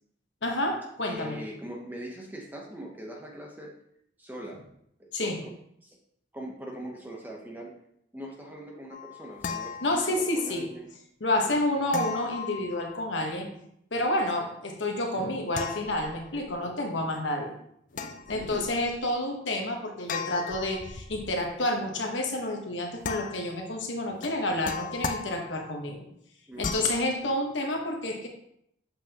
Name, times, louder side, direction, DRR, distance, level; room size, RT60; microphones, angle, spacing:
voice 1, 0.4-1.4 5.1-5.4 9.8-10.7 11.2-13.5 13.9-17.5 17.9-26.0 26.6-28.3, left 1 dB, 80° left, 2 dB, 1.2 m, -29 dB
voice 2, 1.0-3.7 4.2-4.6 5.0-5.3 5.8-6.0 6.3-7.7 8.1-10.9 11.5-11.6 18.3-18.6 26.5-26.9, right 1 dB, 10° right, -1 dB, 0.8 m, -41 dB
sound 1, 8.9-10.5 11.9-13.3 15.5-16.6 17.9-19.0 20.1-21.5 23.0-23.7 24.2-25.8 26.6-27.0, left 5 dB, 45° left, 0.4 m, -37 dB
7.4 x 5.4 x 2.9 m, 0.74 s
head